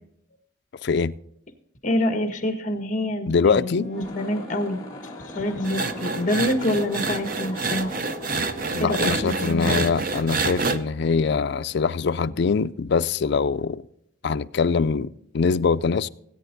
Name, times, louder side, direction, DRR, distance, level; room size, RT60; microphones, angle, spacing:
voice 1, 0.8-1.1 3.3-3.9 8.7-13.8 14.2-16.1, left 5 dB, 55° left, 0.4 m, -23 dB
voice 2, 1.8-4.8 5.2-7.9 8.8-9.9, left 1 dB, 40° left, 1.5 m, -26 dB
Wind instrument woodwind instrument, 3.6-11.9, equal, 85° right, 5.4 m, -46 dB
sound 1, 3.8-10.3, left 1 dB, 20° left, 1.4 m, -41 dB
sound 2, 5.6-10.8, right 4 dB, 45° right, 0.7 m, -28 dB
18.0 x 9.0 x 2.6 m
head